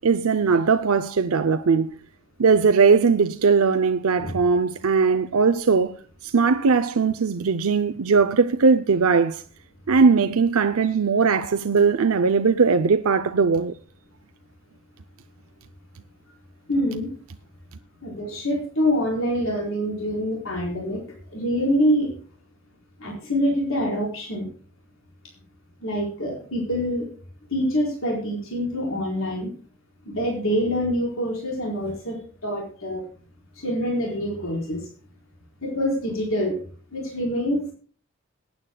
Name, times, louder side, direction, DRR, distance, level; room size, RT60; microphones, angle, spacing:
voice 1, 0.0-1.9 2.4-5.9 6.2-9.4 9.9-13.7, right 5 dB, 85° right, 0.6 m, -19 dB
voice 2, 16.7-17.1 18.0-21.0 21.3-22.1 23.0-24.5 25.8-27.1 27.5-29.5 30.1-33.0 33.6-34.8 35.6-36.5 36.9-37.7, equal, 70° left, 4.3 m, -25 dB
21.5 x 9.4 x 2.3 m
head